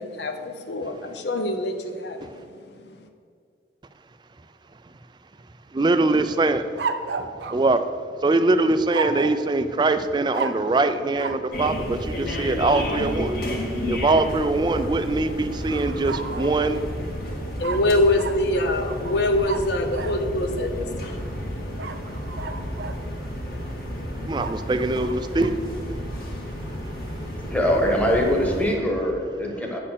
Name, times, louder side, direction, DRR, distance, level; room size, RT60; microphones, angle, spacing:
voice 1, 0.0-2.3 17.5-22.0, left 1 dB, 75° left, 5 dB, 0.7 m, -25 dB
voice 2, 5.7-6.7 7.2-7.9 8.2-16.8 24.2-25.6, right 2 dB, 25° right, 9 dB, 0.3 m, -23 dB
sound 1, 6.7-8.3 8.9-9.5 10.3-10.7 11.1-11.5 12.7-13.2 15.7-16.9 17.6-20.2 21.8-23.0 24.4-25.5, right 4 dB, 75° right, 0.5 m, -33 dB
sound 2, 11.5-28.8, equal, 55° left, 1.5 m, -31 dB
voice 3, 27.5-29.8, equal, 10° left, 0 dB, 1.2 m, -22 dB
8.6 x 4.4 x 7.3 m, 2.2 s
head